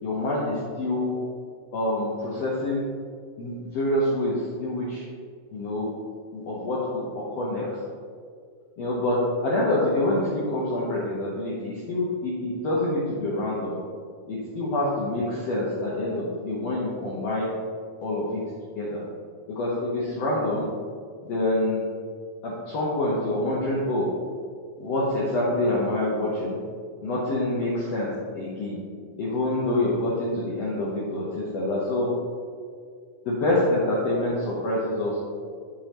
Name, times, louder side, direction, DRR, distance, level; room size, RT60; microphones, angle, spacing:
voice 1, 0.0-1.1 1.7-2.8 3.4-5.0 5.5-5.9 6.3-7.8 8.8-13.8 14.3-17.5 18.0-18.4 18.8-19.0 19.5-20.7 21.2-21.9 22.4-24.1 24.8-26.6 27.0-28.8 29.2-32.1 33.3-35.2, left 1 dB, 60° left, -6 dB, 2.0 m, -26 dB
11.5 x 5.5 x 3.0 m, 2.1 s
omnidirectional pair, 3.6 m